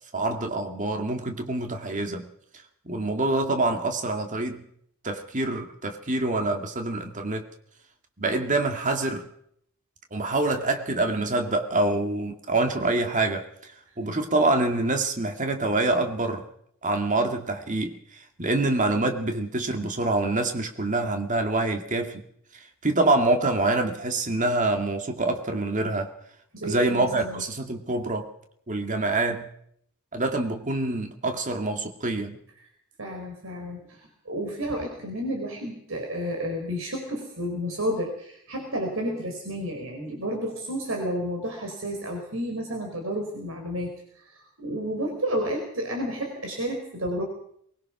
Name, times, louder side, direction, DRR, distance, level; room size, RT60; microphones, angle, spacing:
voice 1, 0.1-2.3 2.8-4.7 5.0-7.5 8.2-9.2 10.1-13.7 14.0-16.5 16.8-22.2 22.5-26.1 26.6-28.3 28.7-29.5 30.1-32.4, right 2 dB, 35° right, 5 dB, 2.2 m, -26 dB
voice 2, 26.5-27.4 33.0-47.2, equal, 70° right, 2 dB, 4.5 m, -31 dB
23.0 x 20.5 x 6.1 m, 0.69 s
head